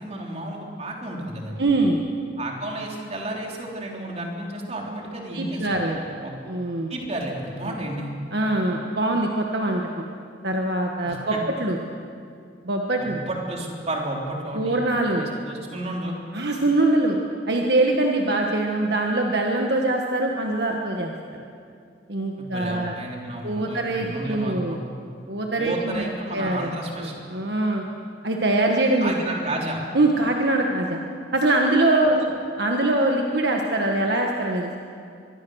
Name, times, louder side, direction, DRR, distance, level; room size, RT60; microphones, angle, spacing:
voice 1, 0.0-1.6 2.4-5.8 6.2-6.3 6.9-8.1 11.0-11.4 13.0-14.8 15.2-16.2 22.4-24.8 25.6-27.1 29.0-29.8 32.2-32.3, right 1 dB, 35° right, -1 dB, 3.5 m, -32 dB
voice 2, 1.6-2.0 5.3-6.0 6.5-6.9 8.3-10.0 10.4-11.8 12.6-13.2 14.5-15.3 16.3-17.2 17.5-21.1 22.1-22.9 23.4-24.8 25.3-26.0 26.3-26.7 27.0-27.8 28.2-29.1 29.9-31.0 31.3-32.2 32.6-34.8, right 2 dB, 60° right, 1 dB, 1.6 m, -23 dB
24.0 x 22.5 x 6.4 m, 2.4 s
head